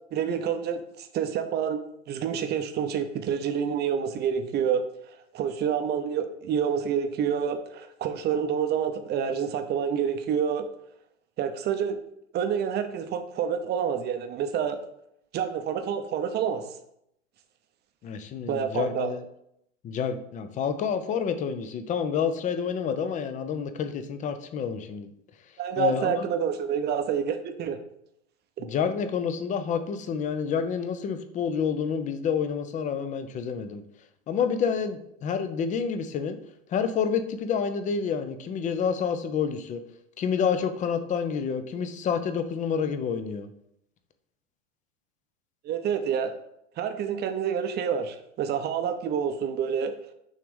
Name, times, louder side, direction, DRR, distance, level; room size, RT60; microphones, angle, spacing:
voice 1, 0.1-1.8 2.1-10.7 11.4-12.0 12.3-14.8 15.3-16.7 18.5-19.1 25.6-27.8 28.6-28.7 45.6-46.3 46.8-49.9, right 7 dB, 25° right, 8 dB, 0.7 m, -28 dB
voice 2, 18.0-19.2 19.8-25.1 25.8-26.3 28.6-33.8 34.3-36.4 36.7-39.8 40.2-43.5, left 6 dB, 20° left, 9 dB, 0.5 m, -28 dB
6.3 x 3.4 x 5.3 m, 0.76 s
hypercardioid pair, 105°, 38 cm